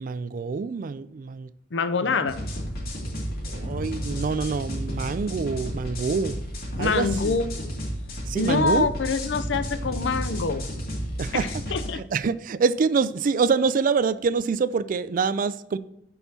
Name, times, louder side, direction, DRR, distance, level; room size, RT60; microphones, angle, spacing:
voice 1, 0.0-1.5 2.0-2.1 3.5-6.4 6.8-7.4 8.3-8.9 11.2-11.5 11.9-15.8, right 5 dB, 50° right, 0.4 m, -26 dB
voice 2, 1.7-2.4 6.8-7.8 8.3-10.7 11.3-12.0, left 4 dB, 70° left, 0.6 m, -26 dB
sound 1, 2.3-11.9, equal, 55° left, 2.5 m, -32 dB
15.5 x 5.4 x 2.8 m
head